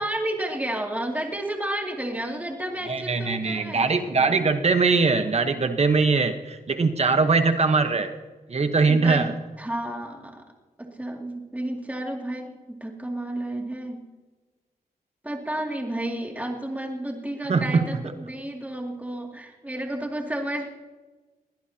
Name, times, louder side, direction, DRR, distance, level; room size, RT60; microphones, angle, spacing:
voice 1, 0.0-4.4 8.9-9.3 9.6-10.4 10.8-14.0 15.2-20.7, right 1 dB, 10° right, 1 dB, 2.5 m, -31 dB
voice 2, 2.8-8.2 8.5-9.3 17.5-18.0, right 4 dB, 45° right, 7 dB, 1.1 m, -22 dB
22.5 x 16.5 x 2.9 m, 1.3 s
wide cardioid pair, 95°, 15 cm